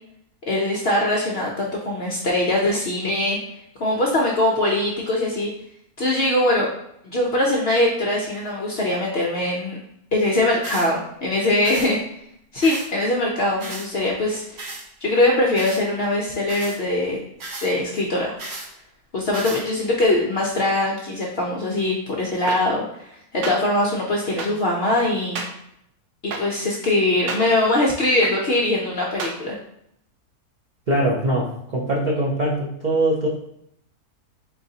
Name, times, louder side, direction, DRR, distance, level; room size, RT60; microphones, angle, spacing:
voice 1, 0.5-3.4 3.8-5.5 6.0-6.7 7.0-9.8 10.1-12.2 12.5-14.6 15.0-17.2 17.6-18.3 19.1-25.4 26.2-29.6, left 1 dB, 60° left, -2 dB, 0.6 m, -22 dB
sound 1, 10.6-10.9 11.6-11.9 12.6-12.9 13.6-13.9 14.6-14.8 15.6-15.8 16.5-16.8 17.4-17.7 18.4-18.7 19.3-19.6, right 2 dB, 50° right, 1.0 m, -34 dB
sound 2, 22.5-22.6 23.4-23.6 24.4-24.5 25.4-25.5 26.3-26.4 27.3-27.4 28.2-28.3 29.2-29.3, right 4 dB, 90° right, 1.2 m, -28 dB
voice 2, 30.9-33.3, right 1 dB, 65° right, -4 dB, 0.4 m, -22 dB
3.9 x 3.8 x 2.7 m, 0.75 s
omnidirectional pair, 1.7 m